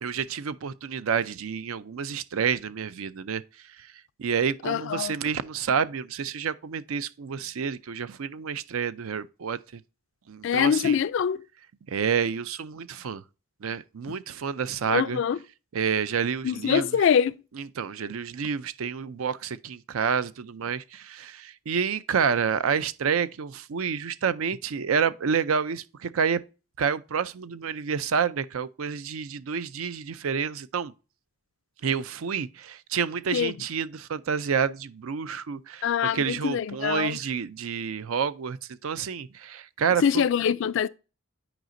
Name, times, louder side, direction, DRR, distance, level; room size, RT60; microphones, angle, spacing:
voice 1, 0.0-3.4 4.2-9.6 10.3-11.0 11.9-13.2 13.6-15.2 15.7-16.9 17.6-26.4 26.8-30.9 31.8-38.6 38.8-40.3, right 6 dB, 75° right, 0.5 m, -29 dB
voice 2, 4.6-5.2 10.4-11.4 14.9-15.4 16.4-17.4 33.3-33.5 35.8-37.2 40.0-40.9, left 8 dB, 60° left, 0.3 m, -24 dB
9.1 x 5.0 x 2.6 m
head